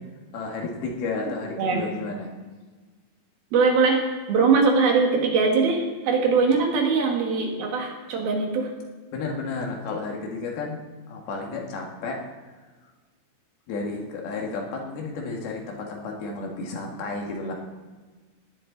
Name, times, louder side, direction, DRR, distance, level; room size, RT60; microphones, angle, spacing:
voice 1, 0.3-2.3 6.5-6.6 9.1-12.2 13.7-17.5, left 3 dB, 80° left, 0 dB, 3.8 m, -32 dB
voice 2, 3.5-8.7, right 4 dB, 75° right, 1 dB, 3.7 m, -21 dB
17.0 x 11.0 x 3.9 m, 1.4 s
omnidirectional pair, 4.4 m